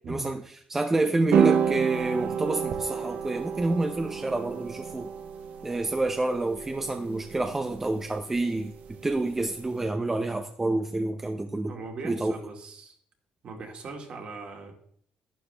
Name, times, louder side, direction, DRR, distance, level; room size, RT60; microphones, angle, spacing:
voice 1, 0.1-0.4 0.7-5.1 5.6-8.7 9.0-11.7 12.0-12.3, right 2 dB, 15° right, 6 dB, 0.6 m, -28 dB
sound 1, 1.3-9.7, right 7 dB, 65° right, 0.9 m, -30 dB
voice 2, 11.7-13.0 13.4-14.7, right 3 dB, 45° right, 2 dB, 2.3 m, -40 dB
11.5 x 10.0 x 3.4 m, 0.63 s
cardioid pair, 130°, 3 cm